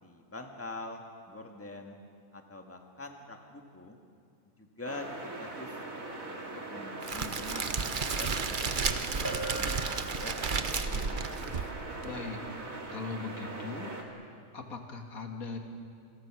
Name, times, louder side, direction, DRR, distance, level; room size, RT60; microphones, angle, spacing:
voice 1, 0.0-2.0 2.3-4.0 4.6-5.7 6.3-7.6 8.1-11.6, left 2 dB, 10° left, 3 dB, 1.8 m, -45 dB
sound 1, 4.8-14.0, right 2 dB, 75° right, 2.8 m, -41 dB
Crackle, 7.0-12.1, right 5 dB, 40° right, 1.0 m, -33 dB
Bell, 9.2-10.8, right 2 dB, 15° right, 2.3 m, -40 dB
voice 2, 12.0-12.4 12.9-13.9 14.5-15.6, left 4 dB, 80° left, 4 dB, 2.4 m, -39 dB
28.0 x 22.0 x 6.2 m, 2.3 s
omnidirectional pair, 1.5 m